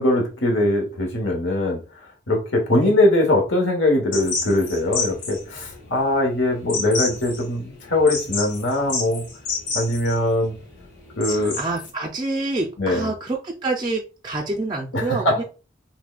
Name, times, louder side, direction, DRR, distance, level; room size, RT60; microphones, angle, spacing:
voice 1, 0.0-1.8 2.3-9.2 9.7-10.5 11.2-11.6 12.8-13.1 14.9-15.4, left 1 dB, 75° left, 1.1 m, -21 dB
sound 1, 4.1-11.9, left 4 dB, 50° left, 2.0 m, -30 dB
voice 2, 11.3-15.4, right 2 dB, 20° right, 0.4 m, -27 dB
5.8 x 2.1 x 2.3 m
head